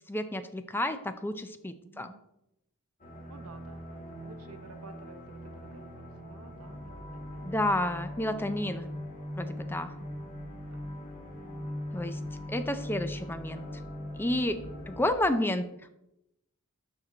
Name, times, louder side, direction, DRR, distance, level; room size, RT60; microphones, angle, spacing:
voice 1, 0.1-2.1 7.4-8.9 9.4-9.9 11.9-12.2 12.5-13.6 14.2-15.6, left 1 dB, 10° left, 9 dB, 0.4 m, -30 dB
voice 2, 1.8-2.2 3.3-7.6 8.2-8.4 9.9-10.3 10.6-10.9 14.6-14.9, right 3 dB, 75° right, 8 dB, 0.9 m, -53 dB
sound 1, 3.0-15.1, left 1 dB, 35° left, 2.0 m, -40 dB
12.5 x 4.4 x 3.9 m, 0.84 s
head